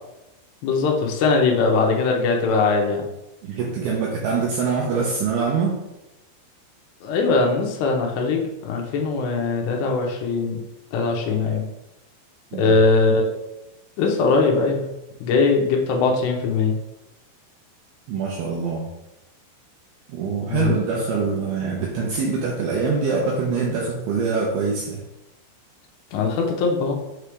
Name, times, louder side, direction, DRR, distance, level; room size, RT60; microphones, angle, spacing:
voice 1, 0.6-3.0 7.0-10.6 10.9-11.6 12.5-13.3 14.0-14.9 15.2-16.7 20.5-20.7 26.1-27.0, left 4 dB, 80° left, 1 dB, 2.8 m, -21 dB
voice 2, 3.4-5.8 12.5-12.8 18.1-18.9 20.1-25.0, right 5 dB, 80° right, -2 dB, 2.3 m, -24 dB
6.9 x 3.3 x 4.8 m, 0.94 s
omnidirectional pair, 5.3 m